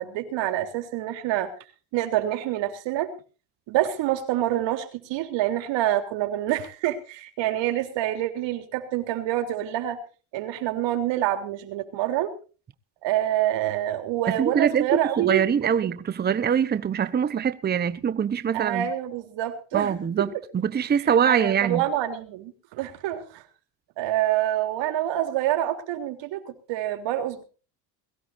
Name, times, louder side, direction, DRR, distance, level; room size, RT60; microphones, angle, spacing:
voice 1, 0.0-1.5 1.9-3.1 3.7-10.0 10.3-12.3 13.0-15.4 15.8-15.9 18.5-20.3 21.3-23.4 24.0-27.4, right 13 dB, 60° right, 3.5 m, -27 dB
voice 2, 14.3-18.9 19.7-21.8, right 8 dB, 20° right, 0.9 m, -24 dB
22.0 x 16.0 x 2.6 m
cardioid pair, 130°, 48 cm